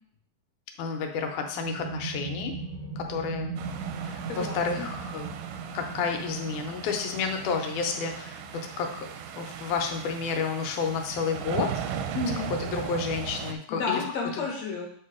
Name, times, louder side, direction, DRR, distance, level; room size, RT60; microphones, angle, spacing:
voice 1, 0.8-2.5 3.0-3.5 4.0-5.3 5.7-8.4 8.8-9.1 9.4-11.8 12.6-14.0 14.4-14.5, left 5 dB, 85° left, 4 dB, 2.3 m, -30 dB
sound 1, 1.3-12.6, right 5 dB, 60° right, 1.1 m, -40 dB
sound 2, 3.6-13.5, right 8 dB, 85° right, 2.0 m, -38 dB
voice 2, 4.3-4.9 12.1-12.5 13.7-14.8, left 4 dB, 70° left, -1 dB, 2.1 m, -31 dB
8.1 x 2.8 x 4.8 m, 0.63 s
omnidirectional pair, 3.5 m